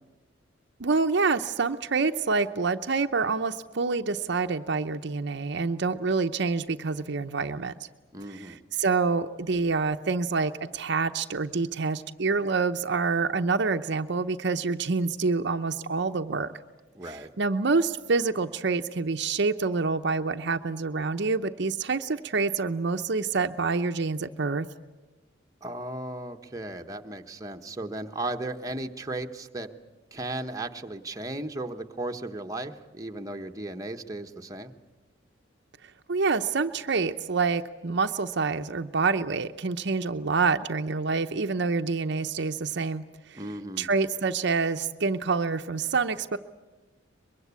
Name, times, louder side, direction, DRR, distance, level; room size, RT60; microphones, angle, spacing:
voice 1, 0.8-7.7 8.3-16.5 17.0-24.7 36.1-43.4 43.8-46.4, right 4 dB, 65° right, 7 dB, 0.8 m, -27 dB
voice 2, 8.1-8.6 16.9-17.3 25.6-29.7 30.1-34.7 43.3-43.9, right 2 dB, 20° right, 3 dB, 1.1 m, -36 dB
23.5 x 22.5 x 8.3 m, 1.2 s
head